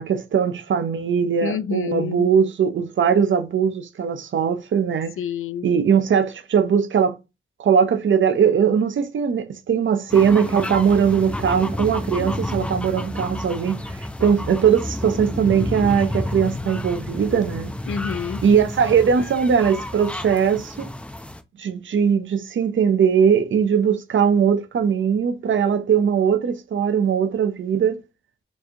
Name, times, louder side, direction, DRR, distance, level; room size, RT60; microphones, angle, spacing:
voice 1, 0.0-5.2 5.6-7.2 7.6-17.7 18.4-20.9 21.6-28.0, right 7 dB, 70° right, 0.6 m, -20 dB
voice 2, 1.4-2.3 5.2-6.0 17.9-18.4, left 7 dB, 85° left, 0.4 m, -28 dB
sound 1, 10.1-21.4, left 1 dB, 5° left, 0.4 m, -30 dB
4.4 x 2.7 x 2.7 m
wide cardioid pair, 155°, 21 cm